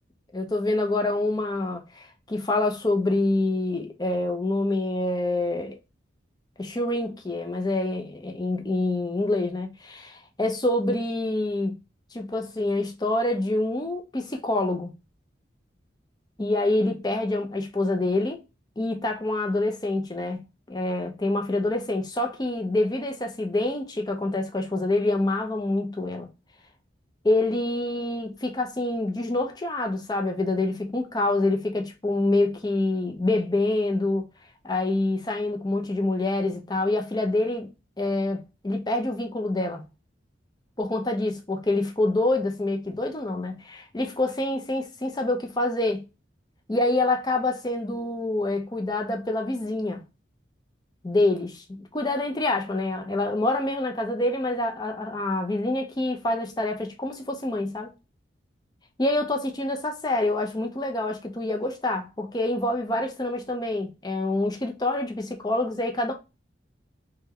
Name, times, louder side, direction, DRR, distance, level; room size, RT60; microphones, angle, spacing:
voice 1, 0.3-5.8 6.6-11.7 12.1-14.9 16.4-18.4 18.8-26.3 27.2-34.3 34.6-37.7 38.0-39.8 40.8-46.0 46.7-50.0 51.0-57.9 59.0-66.1, left 2 dB, 20° left, 0.5 m, -26 dB
3.2 x 2.2 x 3.5 m
head